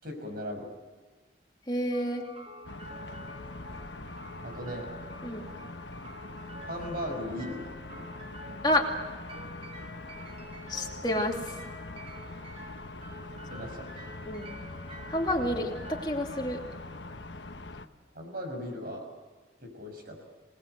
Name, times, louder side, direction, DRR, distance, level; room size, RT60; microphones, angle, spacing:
voice 1, 0.0-0.7 4.4-4.9 6.6-7.6 7.9-8.0 13.5-14.1 18.1-19.1 19.6-20.2, equal, 55° right, 4 dB, 5.8 m, -38 dB
voice 2, 1.7-2.3 5.2-5.5 8.6-8.9 10.7-11.6 14.3-14.6 15.1-16.6, left 1 dB, 25° left, 1 dB, 2.7 m, -29 dB
sound 1, 1.9-17.9, equal, 35° right, 3.7 m, -48 dB
sound 2, 2.6-17.9, left 2 dB, 80° left, 1.2 m, -43 dB
26.5 x 19.0 x 8.0 m, 1.3 s
head